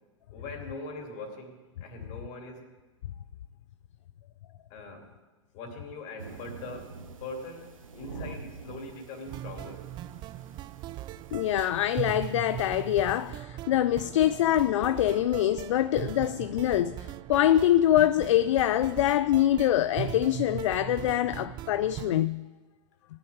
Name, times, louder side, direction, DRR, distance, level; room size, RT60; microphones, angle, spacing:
voice 1, 0.3-2.7 4.7-5.1 5.5-9.9, left 2 dB, 45° left, 2.9 m, -42 dB
sound 1, 6.2-13.3, right 4 dB, 85° right, 1.4 m, -47 dB
sound 2, 9.3-22.2, right 13 dB, 25° right, 0.4 m, -39 dB
voice 2, 11.3-22.4, left 12 dB, 65° left, 0.4 m, -24 dB
19.5 x 11.0 x 3.6 m
hypercardioid pair, 105°, 17 cm